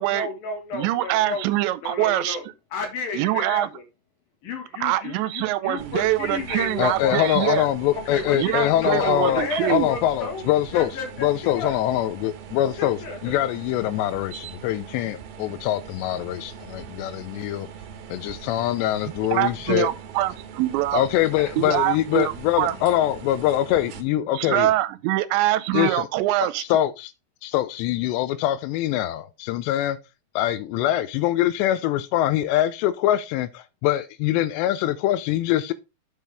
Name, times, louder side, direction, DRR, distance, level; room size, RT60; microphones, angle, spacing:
voice 1, 0.0-1.5 1.8-2.4 2.7-3.8 4.4-7.3 7.9-10.4 10.7-11.8 12.8-13.4 21.4-21.5 22.7-22.8, left 3 dB, 60° left, 3.2 m, -32 dB
voice 2, 0.7-2.4 3.1-3.7 4.8-7.7 8.3-9.9 19.3-21.0 21.6-22.7 24.3-26.6, right 15 dB, 90° right, 2.9 m, -24 dB
sound 1, 5.8-24.0, right 7 dB, 70° right, 2.7 m, -41 dB
voice 3, 6.8-10.9 11.2-17.7 18.1-19.9 20.9-24.7 25.7-26.1 26.6-27.1 27.4-30.0 30.4-35.7, left 13 dB, 85° left, 2.7 m, -23 dB
7.5 x 7.3 x 3.5 m
omnidirectional pair, 5.1 m